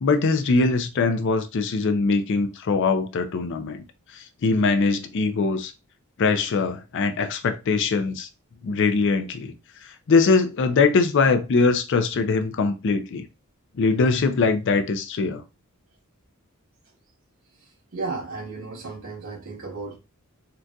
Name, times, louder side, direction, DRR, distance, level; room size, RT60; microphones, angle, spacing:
voice 1, 0.0-3.8 4.1-5.7 6.2-8.3 8.6-9.5 10.1-13.3 13.8-15.4, left 4 dB, 60° left, 0.4 m, -22 dB
voice 2, 17.9-20.0, right 3 dB, 65° right, 1.8 m, -33 dB
3.9 x 2.4 x 2.3 m
head